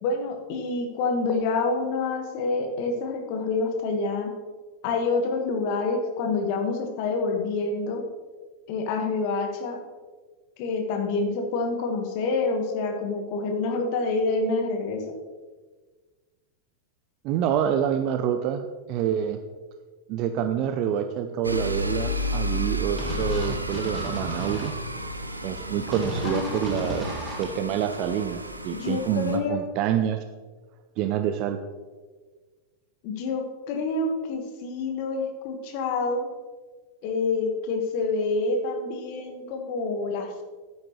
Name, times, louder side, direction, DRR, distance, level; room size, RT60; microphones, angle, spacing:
voice 1, 0.0-4.3 4.8-8.0 8.7-9.8 10.6-15.1 26.2-27.0 28.7-29.7 33.0-36.3 37.0-40.4, left 3 dB, 45° left, 4 dB, 1.5 m, -27 dB
voice 2, 17.2-19.4 20.1-24.7 25.4-27.1 27.4-30.2 31.0-31.6, right 9 dB, 40° right, 8 dB, 0.5 m, -27 dB
sound 1, 21.4-29.4, equal, 85° right, 0.7 m, -32 dB
sound 2, 23.0-24.7 25.9-27.4, right 1 dB, 10° right, 2.0 m, -34 dB
11.5 x 9.4 x 3.1 m, 1.4 s
figure-of-eight pair, 90°, 0 cm